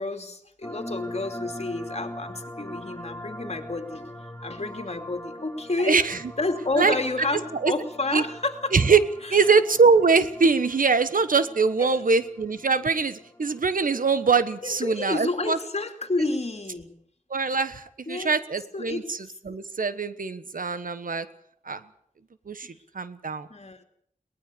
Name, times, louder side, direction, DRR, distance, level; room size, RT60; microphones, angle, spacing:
voice 1, 0.0-4.1 4.4-6.0 6.4-8.7 9.2-9.4 11.8-12.0 14.6-17.0 18.1-18.3 18.7-19.2 22.6-22.7 23.5-23.8, left 2 dB, 50° left, 6 dB, 2.8 m, -30 dB
sound 1, 0.6-15.2, left 1 dB, 15° left, 2.2 m, -42 dB
voice 2, 5.8-6.2 6.8-6.9 7.6-7.7 8.1-8.2 8.7-9.0 9.3-15.6 17.3-19.2 19.4-21.3 21.6-21.8 22.5-23.5, right 4 dB, 90° right, 12 dB, 1.2 m, -22 dB
22.5 x 19.5 x 6.9 m, 0.64 s
wide cardioid pair, 70°, 14 cm